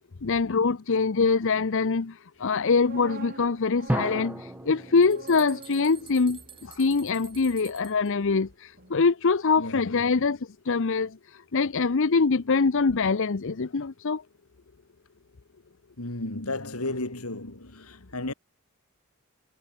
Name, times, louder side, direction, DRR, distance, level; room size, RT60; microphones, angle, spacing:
voice 1, 0.2-10.4 10.6-14.2, left 4 dB, 60° left, 0.7 m, -24 dB
sound 1, 2.5-8.5 8.8-9.0, right 2 dB, 40° right, 6.6 m, -47 dB
sound 2, 3.9-6.6, right 1 dB, 5° right, 0.6 m, -34 dB
sound 3, 4.6-4.7 5.0-8.1, right 8 dB, 25° right, 4.6 m, -49 dB
voice 2, 9.6-10.2 16.0-18.3, left 2 dB, 80° left, 3.3 m, -34 dB
head